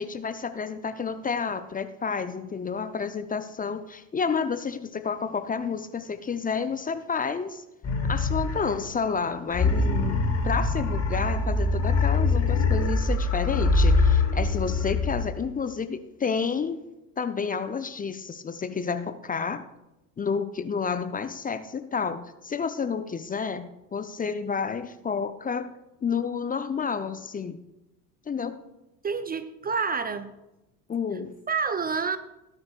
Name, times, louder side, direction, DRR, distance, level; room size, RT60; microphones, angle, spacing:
voice 1, 0.0-7.6 8.1-16.8 17.2-19.6 20.2-25.7 26.0-27.6 28.3-28.6 30.9-31.3, left 5 dB, 20° left, 10 dB, 0.6 m, -30 dB
sound 1, 7.8-9.0 9.5-15.4, left 3 dB, 35° left, 4.2 m, -24 dB
voice 2, 29.0-30.3 31.5-32.2, right 5 dB, 20° right, 11 dB, 0.5 m, -28 dB
17.5 x 9.7 x 2.4 m, 0.96 s
figure-of-eight pair, 65°, 47 cm